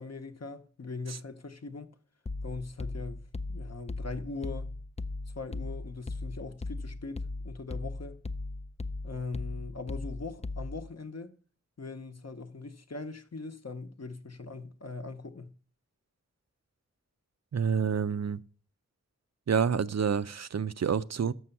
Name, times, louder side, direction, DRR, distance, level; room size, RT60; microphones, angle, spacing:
voice 1, 0.0-1.9 2.4-3.2 3.5-4.7 5.4-8.2 9.0-11.3 11.8-15.5, left 3 dB, 60° left, 0.9 m, -41 dB
sound 1, 2.3-10.9, left 2 dB, 20° left, 0.4 m, -38 dB
voice 2, 17.5-18.4 19.5-21.3, right 7 dB, 60° right, 0.4 m, -28 dB
6.7 x 6.2 x 7.0 m
wide cardioid pair, 45°, 30 cm